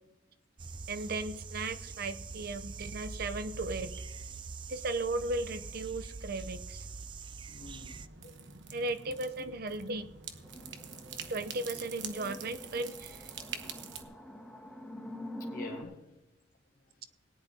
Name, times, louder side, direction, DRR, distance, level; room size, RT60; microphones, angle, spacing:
sound 1, 0.6-8.1, right 4 dB, 25° right, 0.4 m, -44 dB
voice 1, 0.9-3.9 4.7-6.9 8.7-10.1 11.3-13.3, right 2 dB, 55° right, 0.8 m, -36 dB
voice 2, 7.5-8.3 13.9-14.1 15.4-16.2 16.8-17.0, left 3 dB, 50° left, 1.1 m, -48 dB
sound 2, 7.6-14.0, right 7 dB, 80° right, 1.1 m, -46 dB
sound 3, 10.4-15.8, left 1 dB, 5° left, 1.5 m, -46 dB
18.5 x 10.5 x 2.9 m
head